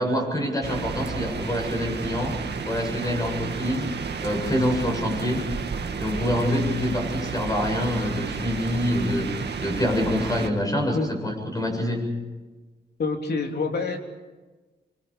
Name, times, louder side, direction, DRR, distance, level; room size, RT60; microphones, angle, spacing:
voice 1, 0.0-5.5 6.0-9.3 9.6-12.1, left 1 dB, 20° left, 2 dB, 7.7 m, -26 dB
sound 1, 0.6-10.5, right 5 dB, 70° right, 2.1 m, -32 dB
voice 2, 13.0-14.0, left 4 dB, 65° left, 3 dB, 3.3 m, -26 dB
27.5 x 25.0 x 5.1 m, 1.2 s
wide cardioid pair, 100°, 18 cm